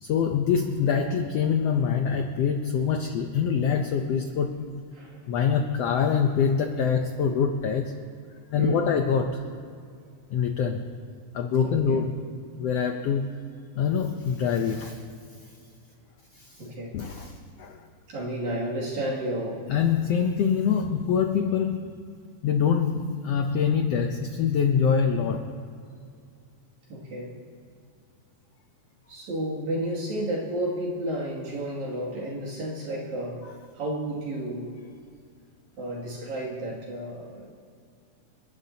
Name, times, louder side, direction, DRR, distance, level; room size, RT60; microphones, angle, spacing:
voice 1, 0.0-4.8 5.3-7.9 8.5-9.4 10.3-10.9 11.3-12.1 12.6-13.3 13.7-15.1 16.4-16.6 16.9-17.8 19.7-22.0 22.4-25.5, left 7 dB, 80° left, 5 dB, 1.4 m, -25 dB
voice 2, 11.6-12.0 16.6-17.0 18.1-19.7 26.9-27.4 29.1-33.4 33.7-34.7 35.8-37.5, right 1 dB, 65° right, -5 dB, 3.7 m, -32 dB
28.5 x 11.5 x 2.8 m, 2.4 s
omnidirectional pair, 3.7 m